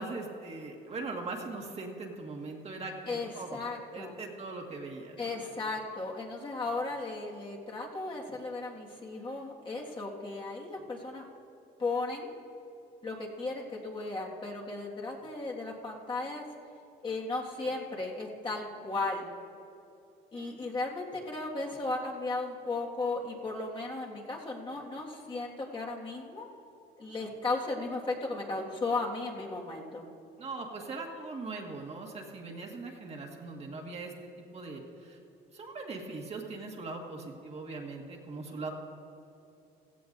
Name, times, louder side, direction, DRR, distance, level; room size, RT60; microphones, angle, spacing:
voice 1, 0.0-3.6 3.9-5.2 30.4-35.2 35.5-38.7, right 3 dB, 40° right, 1 dB, 1.7 m, -40 dB
voice 2, 3.1-4.2 5.2-11.3 11.8-12.3 13.0-16.4 17.0-19.3 20.3-26.5 27.0-30.0, left 3 dB, 30° left, -2 dB, 1.8 m, -35 dB
16.0 x 15.0 x 2.6 m, 2.7 s
cardioid pair, 110°, 17 cm